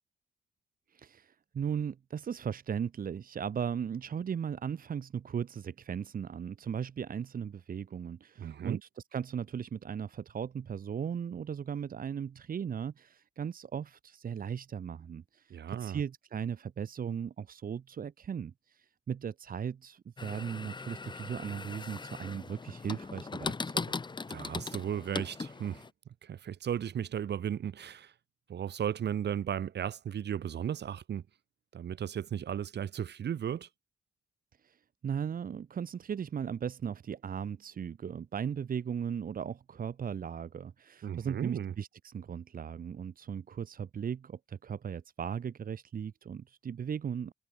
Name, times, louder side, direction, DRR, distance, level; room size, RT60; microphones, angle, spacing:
voice 1, 0.9-23.9 34.6-34.8 35.0-47.3, right 7 dB, 50° right, 2.4 m, -37 dB
voice 2, 8.4-8.8 15.5-16.0 24.3-25.8 26.2-28.1 28.5-31.2 31.7-33.7 41.0-41.7, right 9 dB, 65° right, 3.7 m, -35 dB
sound 1, 20.2-25.9, left 4 dB, 25° left, 2.8 m, -39 dB
wide cardioid pair, 155°, 19 cm